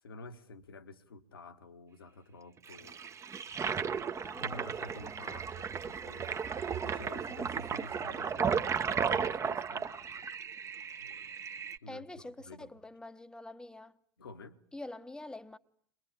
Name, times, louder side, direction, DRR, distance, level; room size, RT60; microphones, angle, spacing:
voice 1, 0.0-3.2 3.6-6.3 6.8-10.3 11.0-11.3 11.8-12.7 14.2-14.6, left 2 dB, 75° left, 1.6 m, -50 dB
Toilet flush, 2.7-11.8, right 6 dB, 25° right, 1.0 m, -35 dB
voice 2, 4.1-5.2 11.9-14.0 14.7-15.6, left 2 dB, 5° left, 1.1 m, -47 dB
22.5 x 22.0 x 9.9 m
figure-of-eight pair, 75°, 12 cm